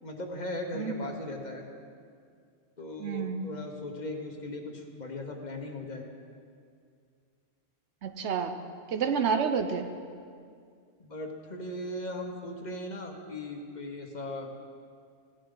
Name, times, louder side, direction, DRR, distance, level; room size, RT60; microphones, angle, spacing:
voice 1, 0.0-1.7 2.8-6.1 11.0-14.5, left 1 dB, 40° left, 3 dB, 1.2 m, -38 dB
voice 2, 0.7-1.1 3.0-3.5 8.0-8.6 8.9-9.9, right 6 dB, 80° right, 8 dB, 1.0 m, -29 dB
16.5 x 10.0 x 3.9 m, 2.2 s
omnidirectional pair, 1.1 m